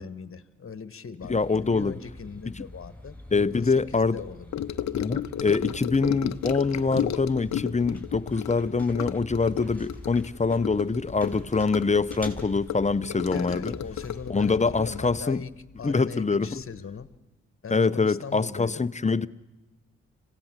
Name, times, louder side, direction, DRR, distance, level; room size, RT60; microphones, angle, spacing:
voice 1, 0.0-4.6 13.3-15.5 15.8-17.1 17.6-18.9, left 6 dB, 45° left, 1.4 m, -40 dB
sound 1, 1.2-15.2, left 2 dB, 5° left, 5.9 m, -44 dB
voice 2, 1.3-1.9 2.4-2.6 3.3-4.2 4.9-13.7 14.3-15.4 15.8-16.6 17.7-19.3, left 4 dB, 25° left, 0.8 m, -25 dB
Gurgling / Sink (filling or washing) / Trickle dribble, 4.5-16.2 16.4-16.8 17.0-17.1, left 11 dB, 60° left, 0.8 m, -33 dB
26.0 x 17.0 x 7.5 m
supercardioid pair, 45°, 31 cm